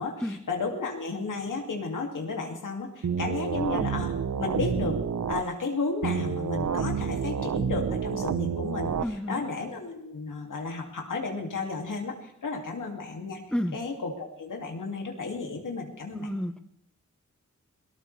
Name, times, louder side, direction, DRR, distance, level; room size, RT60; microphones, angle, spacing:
voice 1, 0.0-4.1 4.4-5.0 5.3-13.4 13.7-16.3, left 3 dB, 80° left, 2 dB, 2.6 m, -33 dB
sound 1, 3.0-5.4 6.0-9.0, right 7 dB, 65° right, 0.9 m, -29 dB
voice 2, 9.0-9.4 13.5-13.7 16.1-16.6, equal, 5° left, 8 dB, 1.2 m, -30 dB
21.5 x 18.0 x 3.4 m, 0.76 s
cardioid pair, 40°, 31 cm